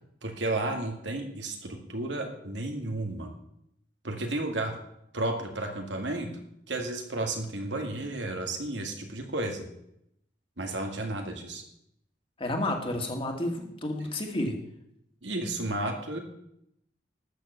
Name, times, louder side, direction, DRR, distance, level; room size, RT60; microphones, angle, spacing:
voice 1, 0.2-3.3 4.0-4.7 5.1-6.3 6.7-9.7 10.6-11.6 15.2-16.2, right 2 dB, 80° right, 3 dB, 2.2 m, -32 dB
voice 2, 12.4-14.6, left 1 dB, 30° left, 2 dB, 2.1 m, -31 dB
12.5 x 6.8 x 7.2 m, 0.77 s
head